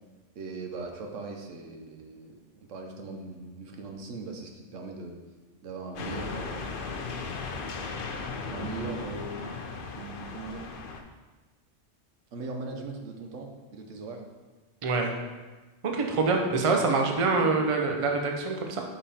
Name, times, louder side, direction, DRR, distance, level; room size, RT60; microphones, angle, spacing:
voice 1, 0.3-5.2 5.6-6.7 8.5-9.4 9.9-10.7 12.3-14.2 17.4-17.5, right 3 dB, 85° right, 2 dB, 1.2 m, -39 dB
sound 1, 6.0-11.0, left 4 dB, 55° left, 0.7 m, -36 dB
voice 2, 14.8-15.1 15.8-18.8, right 3 dB, 35° right, 2 dB, 0.6 m, -25 dB
5.5 x 5.3 x 4.2 m, 1.3 s
omnidirectional pair, 1.2 m